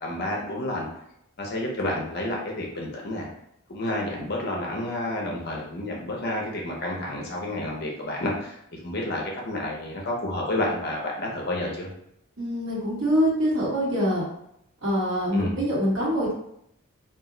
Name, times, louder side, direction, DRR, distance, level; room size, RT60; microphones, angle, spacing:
voice 1, 0.0-0.8 1.4-3.3 3.7-11.9 15.3-15.6, left 1 dB, 45° left, -2 dB, 0.6 m, -30 dB
voice 2, 12.4-14.2 14.8-16.3, equal, 60° right, -7 dB, 1.3 m, -24 dB
2.4 x 2.1 x 3.7 m, 0.75 s
head